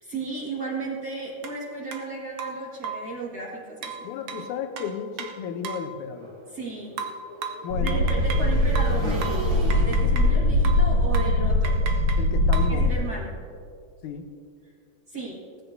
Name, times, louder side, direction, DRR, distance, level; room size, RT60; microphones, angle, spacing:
voice 1, 0.0-3.9 6.5-6.9 7.8-11.8 12.7-13.3 15.1-15.4, right 3 dB, 35° right, -5 dB, 2.0 m, -34 dB
sound 1, 1.4-1.6 1.9-2.0 2.4-3.1 3.8-5.9 7.0-8.5 8.7-10.4 10.6-10.9 11.1-11.4 11.6-12.8, right 6 dB, 90° right, 1.3 m, -35 dB
voice 2, 4.0-6.4 7.6-8.0 12.2-12.8 14.0-14.3, left 7 dB, 75° left, 7 dB, 2.2 m, -33 dB
Motorcycle / Engine, 6.1-12.2, right 1 dB, 70° right, 5.1 m, -39 dB
sound 2, 7.7-12.9, left 1 dB, 55° left, 2.4 m, -22 dB
19.0 x 14.5 x 2.7 m, 2.4 s
omnidirectional pair, 3.9 m